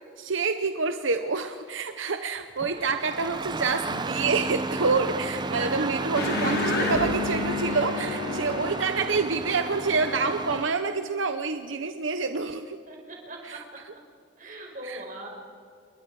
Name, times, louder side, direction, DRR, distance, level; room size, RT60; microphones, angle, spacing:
voice 1, 0.2-12.8 13.4-13.9 14.8-15.0, right 4 dB, 80° right, 7 dB, 0.9 m, -27 dB
Engine starting, 2.6-10.7, right 3 dB, 25° right, 0.7 m, -33 dB
voice 2, 5.4-5.9 12.9-13.6 14.4-15.3, right 2 dB, 40° right, 0 dB, 5.1 m, -39 dB
sound 1, 6.1-11.1, left 3 dB, 55° left, 3.3 m, -31 dB
29.0 x 22.0 x 4.9 m, 2.2 s
head